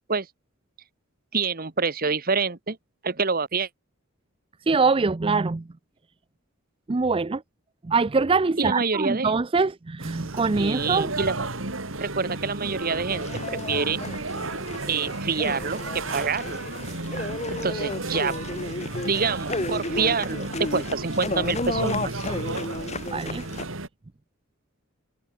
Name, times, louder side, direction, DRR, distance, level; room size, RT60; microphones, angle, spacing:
voice 1, 1.3-2.8 3.0-3.7 8.6-9.3 10.5-11.5 12.0-14.0 14.9-16.6 17.5-18.4 19.0-22.2, right 5 dB, 45° right, 1.3 m, -27 dB
voice 2, 4.7-5.7 6.9-7.4 7.8-11.1 23.1-23.4, right 4 dB, 25° right, 0.4 m, -23 dB
sound 1, 10.0-23.9, right 2 dB, 65° right, 3.1 m, -33 dB
sound 2, 13.1-23.6, left 2 dB, 30° left, 4.0 m, -33 dB
head